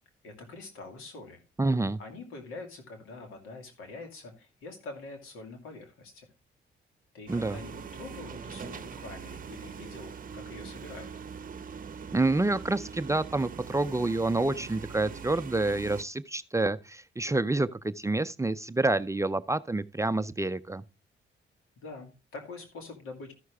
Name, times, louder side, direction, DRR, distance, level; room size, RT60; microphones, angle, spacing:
voice 1, 0.2-1.4 2.0-6.3 7.1-11.1 21.8-23.3, left 3 dB, 85° left, 2.4 m, -45 dB
voice 2, 1.6-2.0 7.3-7.6 12.1-20.8, right 2 dB, 15° right, 0.4 m, -28 dB
sound 1, 7.3-16.0, right 6 dB, 40° right, 0.8 m, -42 dB
13.5 x 6.3 x 3.4 m
cardioid pair, 65°, 21 cm